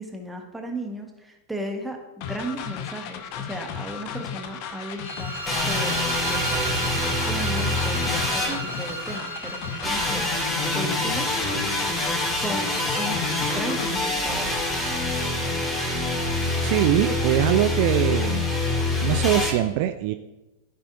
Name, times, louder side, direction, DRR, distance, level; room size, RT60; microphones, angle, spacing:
voice 1, 0.0-6.0 6.3-10.3 10.7-11.3 12.4-14.5, right 1 dB, 5° right, 2 dB, 1.3 m, -35 dB
sound 1, 2.2-14.1, left 8 dB, 45° left, 0.6 m, -35 dB
sound 2, 5.0-10.9, right 4 dB, 75° right, 0.9 m, -34 dB
sound 3, 5.5-9.2 9.8-19.5, left 2 dB, 15° left, 2.5 m, -26 dB
voice 2, 16.6-18.5 19.0-20.1, right 13 dB, 45° right, 8 dB, 0.4 m, -22 dB
13.5 x 5.5 x 2.6 m, 1.0 s
figure-of-eight pair, 90°, 0 cm